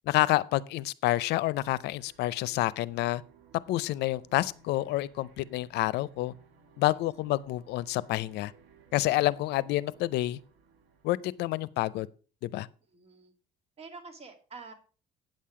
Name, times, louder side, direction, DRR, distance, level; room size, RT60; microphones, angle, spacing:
voice 1, 0.1-3.2 3.7-6.3 6.8-8.5 8.9-10.4 11.0-12.1 12.4-12.7, left 16 dB, 80° left, 0.5 m, -28 dB
sound 1, 1.2-11.7, right 6 dB, 85° right, 1.8 m, -59 dB
voice 2, 6.9-7.3 12.9-13.3 13.8-14.7, right 4 dB, 35° right, 2.2 m, -48 dB
9.0 x 7.5 x 4.9 m
cardioid pair, 110°, 17 cm